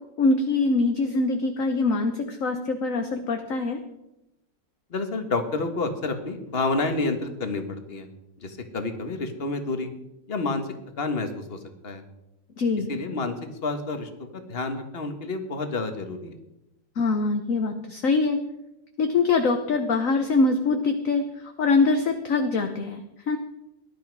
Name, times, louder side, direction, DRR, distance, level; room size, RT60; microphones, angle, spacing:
voice 1, 0.2-3.8 12.6-12.9 17.0-18.4 19.0-21.2 21.6-23.4, left 3 dB, 50° left, 5 dB, 1.3 m, -23 dB
voice 2, 4.9-8.1 8.4-9.9 10.3-10.6 11.0-11.6 11.8-12.0 12.9-13.3 13.6-16.4, left 3 dB, 35° left, 7 dB, 1.7 m, -29 dB
18.5 x 11.5 x 4.8 m, 0.88 s
omnidirectional pair, 1.9 m